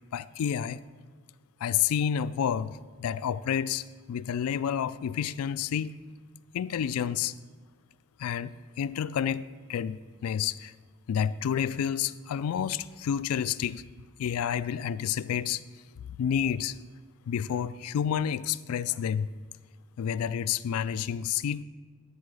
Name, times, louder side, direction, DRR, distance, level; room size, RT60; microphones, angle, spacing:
voice 1, 0.1-0.8 1.6-6.0 6.5-7.3 8.2-10.7 11.1-13.9 14.2-15.6 16.1-16.8 17.3-19.3 20.0-21.6, left 8 dB, 85° left, 0.3 m, -29 dB
10.0 x 4.8 x 6.3 m
head